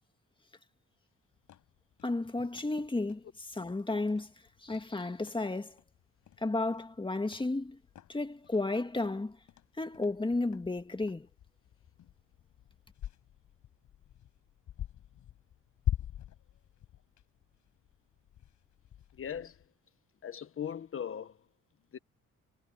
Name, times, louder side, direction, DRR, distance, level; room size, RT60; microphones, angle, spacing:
sound 1, 1.3-19.7, left 11 dB, 75° left, 5.9 m, -44 dB
voice 1, 2.0-3.2 3.5-4.3 4.6-5.8 6.4-7.8 8.1-9.4 9.8-11.3, left 2 dB, 15° left, 2.1 m, -33 dB
voice 2, 19.1-19.6 20.2-21.4 21.9-22.0, left 8 dB, 45° left, 1.2 m, -39 dB
cardioid pair, 90°, 30 cm